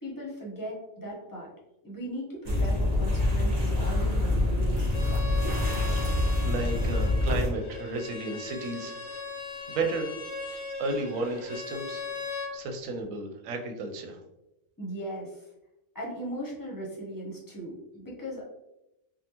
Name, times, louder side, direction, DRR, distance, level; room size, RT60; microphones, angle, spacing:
voice 1, 0.0-1.5 1.8-4.8 14.8-15.5 15.9-18.4, right 1 dB, 20° left, -3 dB, 0.7 m, -38 dB
sound 1, 2.4-7.5, left 2 dB, 35° right, 0.8 m, -26 dB
Bowed string instrument, 4.9-12.5, left 3 dB, 55° left, 0.3 m, -39 dB
voice 2, 5.2-5.6 6.0-9.0 9.7-10.1 10.5-12.0 12.5-14.2, right 3 dB, 90° right, 4 dB, 1.0 m, -33 dB
3.6 x 2.2 x 2.8 m, 0.91 s
omnidirectional pair, 1.3 m